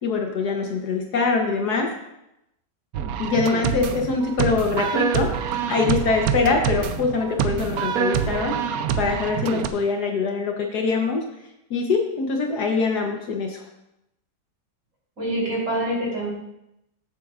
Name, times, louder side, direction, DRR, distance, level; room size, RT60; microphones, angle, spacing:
voice 1, 0.0-1.9 3.2-5.3 5.7-8.6 9.0-11.2 11.7-13.6, left 4 dB, 70° left, 2 dB, 1.5 m, -23 dB
sound 1, 2.9-9.7, right 8 dB, 65° right, 1.0 m, -26 dB
voice 2, 15.2-16.3, right 1 dB, 45° right, -5 dB, 3.9 m, -25 dB
14.5 x 8.0 x 2.4 m, 0.86 s
omnidirectional pair, 1.8 m